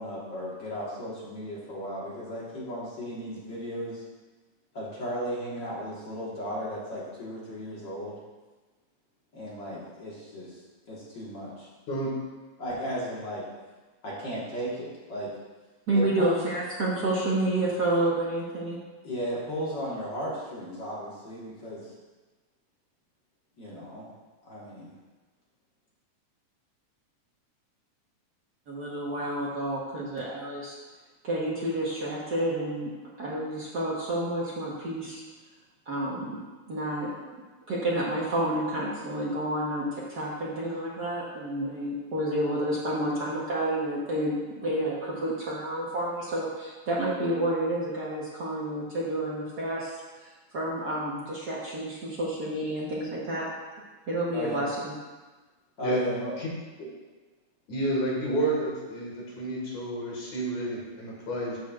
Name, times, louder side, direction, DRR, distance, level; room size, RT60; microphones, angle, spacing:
voice 1, 0.0-4.0 4.7-8.2 9.3-10.6 10.8-11.7 12.6-13.4 14.0-15.3 15.9-16.4 19.0-21.9 23.6-24.1 24.4-24.9 54.3-54.7 55.8-56.4, equal, 45° left, -7 dB, 1.8 m, -35 dB
voice 2, 15.9-18.8 28.7-30.7 31.2-35.2 35.9-36.4 36.7-37.1 37.7-49.9 50.2-53.4 54.1-54.9, right 1 dB, 70° right, -6 dB, 0.9 m, -29 dB
voice 3, 57.7-61.6, right 1 dB, 75° left, -3 dB, 3.0 m, -30 dB
12.0 x 6.5 x 2.4 m, 1.3 s
omnidirectional pair, 3.4 m